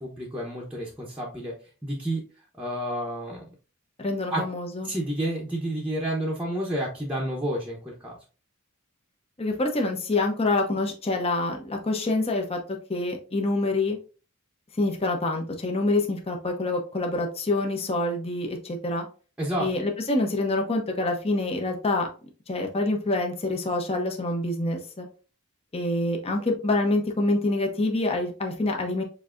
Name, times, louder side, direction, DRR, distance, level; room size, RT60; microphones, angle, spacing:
voice 1, 0.0-1.5 1.8-2.2 2.6-3.4 4.3-4.4 4.8-8.2 19.4-19.7, right 1 dB, 5° right, -4 dB, 0.8 m, -30 dB
voice 2, 4.0-4.9 9.4-12.6 12.9-14.0 14.8-19.1 19.6-22.1 22.5-25.1 25.7-29.0, left 2 dB, 25° left, 2 dB, 0.7 m, -26 dB
7.1 x 2.7 x 2.5 m, 0.36 s
head